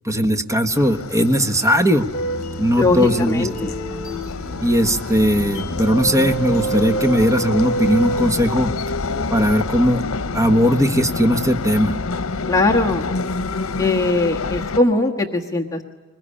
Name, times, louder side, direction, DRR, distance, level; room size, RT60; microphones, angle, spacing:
voice 1, 0.0-2.1 2.6-3.7 4.6-8.7 9.3-10.0 10.3-12.0, equal, 15° right, 7 dB, 1.3 m, -18 dB
sound 1, 0.7-14.8, left 3 dB, 85° left, 0.8 m, -28 dB
sound 2, 2.1-8.3, right 2 dB, 40° left, 4.5 m, -28 dB
voice 2, 2.8-3.7 12.5-13.1 13.8-15.8, left 2 dB, 15° left, 0 dB, 1.4 m, -20 dB
22.5 x 20.5 x 9.9 m, 1.2 s
head